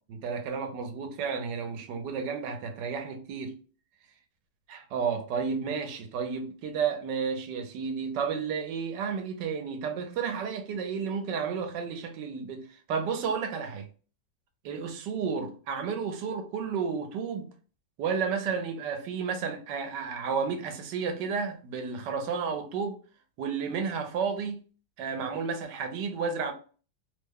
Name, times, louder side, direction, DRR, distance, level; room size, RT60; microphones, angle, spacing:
voice 1, 0.1-3.6 4.7-13.9 14.6-17.5 18.0-23.0 23.4-24.6 25.0-26.5, right 6 dB, 75° right, 1.3 m, -32 dB
3.3 x 2.2 x 3.5 m
omnidirectional pair, 1.9 m